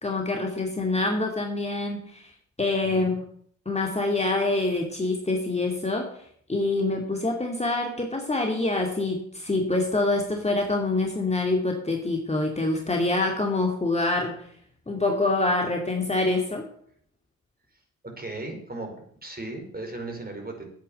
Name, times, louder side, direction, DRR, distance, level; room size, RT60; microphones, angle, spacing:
voice 1, 0.0-2.3 2.6-3.1 3.7-6.1 6.5-14.4 14.9-16.7, left 2 dB, 15° left, 1 dB, 2.4 m, -25 dB
voice 2, 18.0-18.9 19.2-20.7, right 2 dB, 20° right, 3 dB, 5.2 m, -36 dB
10.5 x 8.7 x 7.6 m, 0.63 s
hypercardioid pair, 45°, 42 cm